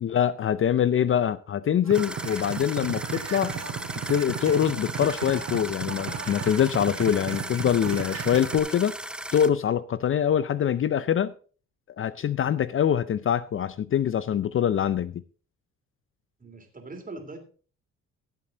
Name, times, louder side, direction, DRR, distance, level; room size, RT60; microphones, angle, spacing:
voice 1, 0.0-3.6 4.1-9.0 9.3-11.3 12.0-15.2, left 9 dB, 45° left, 0.5 m, -24 dB
sound 1, 1.9-9.5, right 1 dB, 5° right, 0.7 m, -37 dB
sound 2, 1.9-8.6, right 7 dB, 60° right, 2.3 m, -35 dB
voice 2, 16.4-17.4, right 3 dB, 30° right, 3.0 m, -41 dB
15.0 x 7.5 x 3.8 m
cardioid pair, 90°, 30 cm